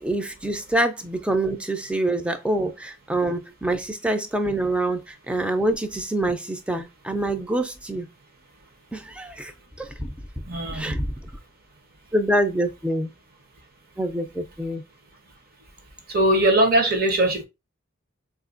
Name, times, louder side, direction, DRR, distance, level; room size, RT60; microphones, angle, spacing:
voice 1, 0.0-8.1 8.9-9.5 9.8-10.1 10.7-11.1 12.1-13.1 14.0-14.8, right 1 dB, 5° right, 0.4 m, -26 dB
voice 2, 10.4-11.0 16.1-17.4, right 1 dB, 45° right, 0.8 m, -20 dB
3.5 x 2.5 x 2.4 m
head